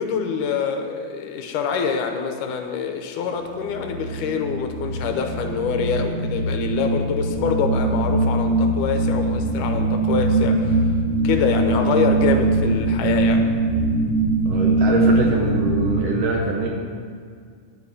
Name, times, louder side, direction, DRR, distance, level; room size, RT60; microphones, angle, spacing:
voice 1, 0.0-10.9 11.2-13.4, left 6 dB, 80° left, 5 dB, 2.3 m, -25 dB
sound 1, 3.5-15.9, right 2 dB, 45° left, 2.5 m, -21 dB
voice 2, 14.4-16.7, right 3 dB, 70° right, 0 dB, 1.7 m, -23 dB
11.5 x 5.0 x 8.1 m, 2.1 s
omnidirectional pair, 3.8 m